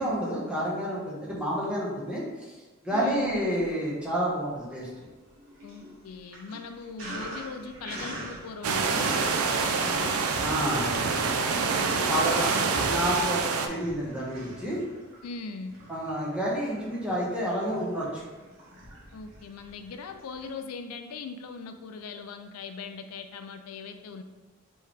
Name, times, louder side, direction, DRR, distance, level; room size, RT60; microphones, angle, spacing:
voice 1, 0.0-2.5 2.8-4.9 10.4-10.9 12.0-12.5 12.8-14.8 15.9-18.2, equal, 5° right, -6 dB, 1.0 m, -29 dB
voice 2, 2.9-3.4 5.6-10.3 11.7-12.7 15.2-15.8 19.1-24.2, left 4 dB, 90° left, 7 dB, 0.4 m, -40 dB
Sink (filling or washing), 3.3-4.0 4.4-20.5, right 1 dB, 60° right, 1.4 m, -44 dB
sound 1, 8.6-13.7, right 4 dB, 85° right, 0.5 m, -26 dB
sound 2, 10.3-10.7 11.3-11.4 11.7-11.8 12.1-12.2 12.7-13.3 13.8-14.1 14.4-14.5 14.7-15.0 15.5-15.6 15.8-16.0 16.4-16.5 16.7-16.8, equal, 30° left, 1.3 m, -41 dB
4.6 x 3.1 x 3.5 m, 1.2 s
head